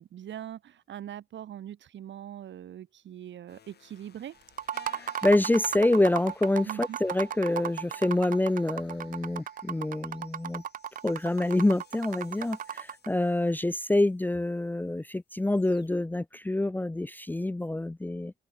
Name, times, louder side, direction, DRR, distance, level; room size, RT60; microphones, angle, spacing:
voice 1, 0.0-4.4 6.6-7.0, right 10 dB, 65° right, 3.7 m, -42 dB
sound 1, 3.5-14.3 14.7-15.0 15.3-15.9, left 8 dB, 55° left, 6.3 m, -59 dB
sound 2, 4.5-13.1, right 10 dB, 45° right, 0.4 m, -36 dB
voice 2, 4.9-10.6 11.0-18.3, left 1 dB, 10° left, 0.6 m, -27 dB
open air
cardioid pair, 90°, 20 cm